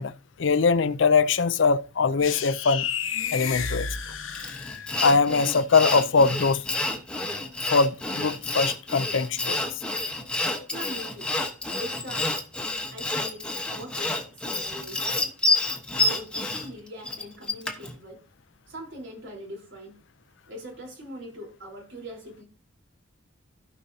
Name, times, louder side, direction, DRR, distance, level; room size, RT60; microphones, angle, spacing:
voice 1, 0.0-2.9 3.3-3.9 5.0-6.6 7.7-9.8 10.6-10.7, left 4 dB, 65° left, 0.5 m, -22 dB
sound 1, 2.2-5.1, left 7 dB, 85° left, 1.1 m, -31 dB
Sawing, 4.4-17.9, left 2 dB, 5° left, 1.1 m, -29 dB
voice 2, 10.7-12.3 12.9-15.4 15.9-18.2 18.7-20.0 20.5-22.4, equal, 65° right, 3.9 m, -42 dB
16.0 x 5.5 x 2.7 m
head